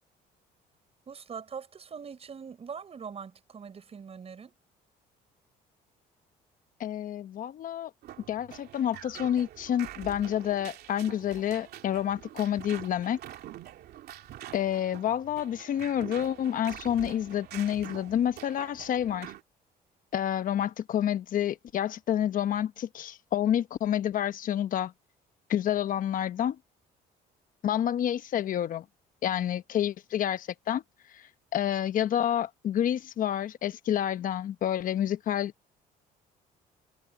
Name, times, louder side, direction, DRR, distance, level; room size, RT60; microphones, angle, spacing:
voice 1, 1.1-4.5, right 6 dB, 35° right, 6.2 m, -42 dB
voice 2, 6.8-7.9 8.3-13.2 14.5-19.3 20.1-24.9 25.5-26.6 27.6-28.8 29.2-30.8 31.1-35.5, left 10 dB, 55° left, 1.0 m, -29 dB
sound 1, 8.0-19.4, right 12 dB, 70° right, 2.8 m, -46 dB
cardioid pair, 110°, 17 cm